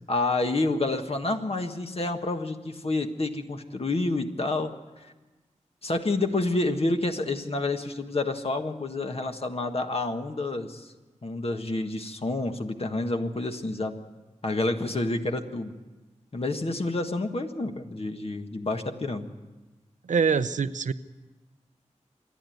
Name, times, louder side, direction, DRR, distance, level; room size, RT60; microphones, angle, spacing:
voice 1, 0.1-4.7 5.0-5.1 5.8-10.9 11.2-14.0 14.4-15.7 16.3-19.3, left 2 dB, 50° left, 5 dB, 1.6 m, -28 dB
voice 2, 20.1-20.9, right 6 dB, 90° right, 13 dB, 0.6 m, -24 dB
26.5 x 10.5 x 9.3 m, 1.2 s
wide cardioid pair, 70°, 12 cm